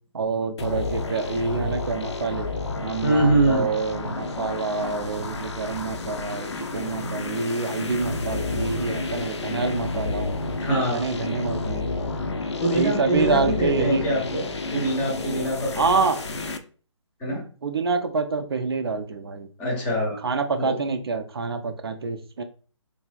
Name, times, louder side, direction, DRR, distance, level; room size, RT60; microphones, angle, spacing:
voice 1, 0.1-2.5 2.8-10.3 10.9-11.9 12.7-14.0 15.8-16.2 17.6-19.5 20.2-22.4, right 4 dB, 50° right, 7 dB, 0.4 m, -27 dB
sound 1, 0.6-16.6, left 3 dB, 60° left, 0.5 m, -30 dB
voice 2, 3.0-3.7 10.6-11.1 12.6-16.0 17.2-17.4 19.6-20.2 20.6-20.8, right 1 dB, 10° left, -2 dB, 0.6 m, -24 dB
2.9 x 2.6 x 2.3 m, 0.40 s
figure-of-eight pair, 145°, 16 cm